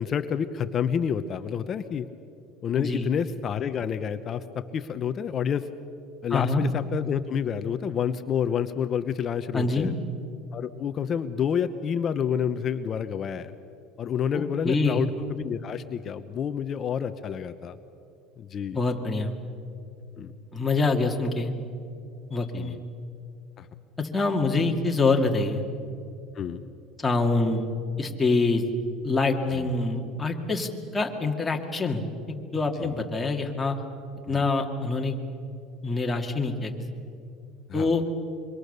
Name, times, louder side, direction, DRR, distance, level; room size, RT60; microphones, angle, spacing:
voice 1, 0.0-2.1 2.6-5.7 6.2-9.9 10.5-13.5 14.0-17.8 18.4-18.8 20.2-20.3 22.5-22.8 23.6-23.7 26.3-26.7 29.5-29.7 32.8-33.0 34.3-34.5 37.7-38.0, left 8 dB, 35° left, 10 dB, 0.8 m, -29 dB
voice 2, 2.8-3.1 6.3-6.6 9.5-9.9 14.3-15.0 18.7-19.3 20.5-21.5 22.3-22.8 24.0-25.6 27.0-27.7 28.0-28.6 29.0-33.8 34.3-35.1 35.8-36.7 37.7-38.0, left 3 dB, 10° left, 1 dB, 2.2 m, -25 dB
26.0 x 24.0 x 6.8 m, 2.6 s
cardioid pair, 135°, 0 cm